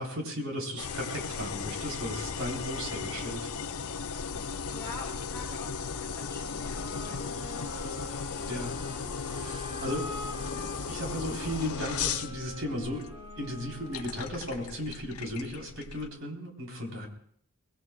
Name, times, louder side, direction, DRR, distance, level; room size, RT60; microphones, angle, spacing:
voice 1, 0.0-3.5 8.5-8.7 9.2-10.1 10.6-13.1 13.4-17.1, equal, 65° right, 0 dB, 4.3 m, -35 dB
sound 1, 0.8-16.1, left 5 dB, 85° left, 0.7 m, -36 dB
voice 2, 3.0-3.3 4.7-8.1, left 3 dB, 15° left, -5 dB, 6.0 m, -46 dB
sound 2, 6.6-14.5, left 1 dB, 20° right, 4.6 m, -44 dB
24.5 x 20.5 x 2.5 m, 0.63 s
head